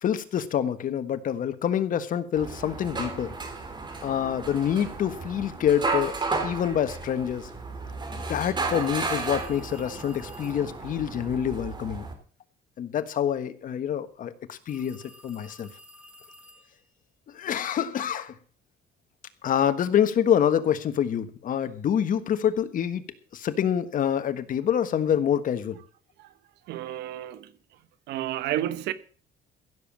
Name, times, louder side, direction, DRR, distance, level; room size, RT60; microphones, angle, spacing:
voice 1, 0.0-3.3 4.0-6.2 6.4-7.5 8.1-12.0 12.8-15.7 17.3-18.3 19.4-23.0 23.3-25.8, left 9 dB, 55° left, 1.4 m, -26 dB
sound 1, 2.4-12.1, right 3 dB, 25° right, 3.4 m, -33 dB
sound 2, 8.7-10.8 14.7-16.9, equal, 5° right, 5.1 m, -52 dB
voice 2, 26.7-27.5 28.1-28.9, right 13 dB, 85° right, 1.2 m, -31 dB
15.5 x 7.3 x 7.3 m
cardioid pair, 110°, 17 cm